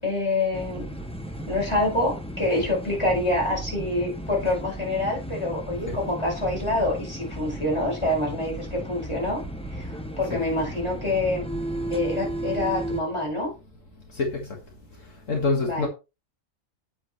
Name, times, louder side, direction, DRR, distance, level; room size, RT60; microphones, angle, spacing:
voice 1, 0.0-0.9 1.5-9.4 9.7-11.5 11.9-13.5 15.6-15.9, left 2 dB, 20° left, -2 dB, 5.5 m, -26 dB
sound 1, 0.5-13.0, right 1 dB, 5° left, 0.8 m, -34 dB
voice 2, 14.1-14.6 15.0-15.9, left 3 dB, 70° left, 1 dB, 2.1 m, -27 dB
9.2 x 8.0 x 3.2 m, 0.28 s
omnidirectional pair, 1.4 m